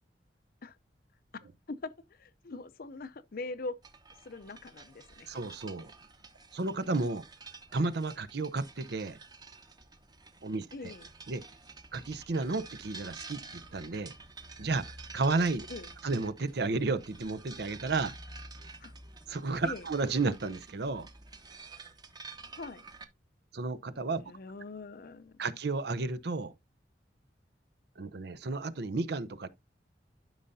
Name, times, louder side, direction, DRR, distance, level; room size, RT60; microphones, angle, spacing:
voice 1, 1.3-3.8 4.2-5.3 10.7-11.1 15.7-15.9 18.8-18.9 19.6-19.9 22.6-22.8 24.2-25.5, left 3 dB, 55° left, 0.6 m, -42 dB
sound 1, 3.8-23.0, right 3 dB, 25° right, 1.0 m, -50 dB
voice 2, 5.3-5.9 6.5-7.2 7.7-9.2 10.4-10.9 11.3-11.4 11.9-14.1 14.6-15.7 16.0-18.1 19.3-21.1 23.5-24.2 25.4-26.5 28.0-29.5, right 3 dB, 65° right, 0.7 m, -32 dB
12.0 x 5.6 x 2.7 m
head